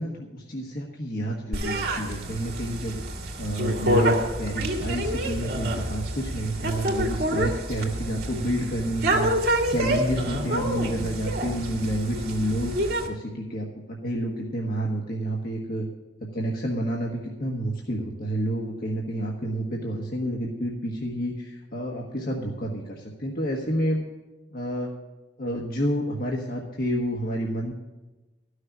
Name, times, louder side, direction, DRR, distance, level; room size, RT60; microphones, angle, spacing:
voice 1, 0.0-3.0 3.4-15.8 16.3-24.0 24.5-24.9 25.4-27.7, right 1 dB, 55° left, -2 dB, 1.4 m, -29 dB
sound 1, 1.5-13.1, right 1 dB, 60° right, 1.9 m, -27 dB
13.5 x 6.5 x 7.5 m, 1.1 s
head